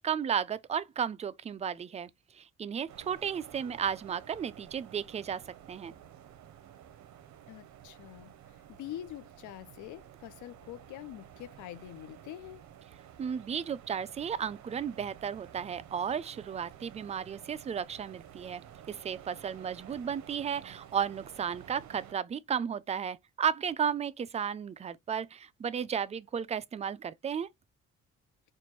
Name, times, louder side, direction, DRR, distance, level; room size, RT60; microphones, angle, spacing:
voice 1, 0.0-2.1 2.3-5.4 5.7-5.9 13.2-18.6 18.9-27.5, right 7 dB, 25° right, 0.3 m, -34 dB
sound 1, 2.9-22.1, right 10 dB, 70° right, 0.7 m, -52 dB
voice 2, 7.5-12.6, left 13 dB, 80° left, 0.6 m, -45 dB
4.4 x 2.5 x 3.1 m
cardioid pair, 90°, 30 cm